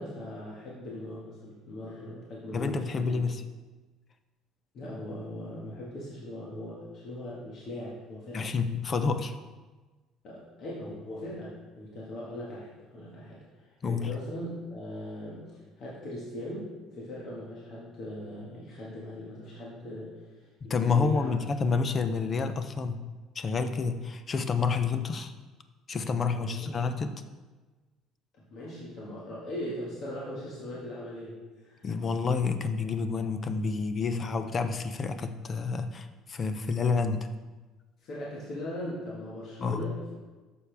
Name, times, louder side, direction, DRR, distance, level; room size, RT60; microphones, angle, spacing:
voice 1, 0.0-3.2 4.7-8.5 10.2-20.3 20.6-21.3 26.4-26.8 28.3-31.9 38.0-40.1, left 1 dB, 45° left, -6 dB, 1.7 m, -40 dB
voice 2, 2.5-3.4 8.3-9.4 13.8-14.1 20.6-23.0 23.4-25.3 25.9-27.1 31.8-37.3 39.6-39.9, left 4 dB, 25° left, 9 dB, 0.5 m, -29 dB
11.5 x 7.0 x 3.4 m, 1.3 s
cardioid pair, 175°, 0 cm